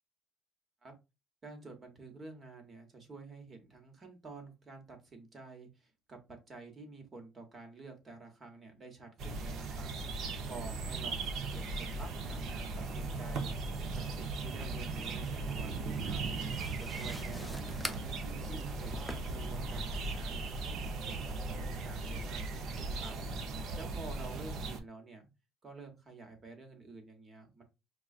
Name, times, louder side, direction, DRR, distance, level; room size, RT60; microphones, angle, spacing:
voice 1, 1.4-9.9 10.5-16.2 16.8-23.1 23.7-25.3 25.6-27.6, right 3 dB, 25° right, 4 dB, 1.1 m, -50 dB
sound 1, 9.2-24.8, right 3 dB, 55° right, 0.7 m, -38 dB
sound 2, 15.2-20.4, left 1 dB, ahead, 0.4 m, -47 dB
6.0 x 2.3 x 2.4 m, 0.26 s
cardioid pair, 145°, 0 cm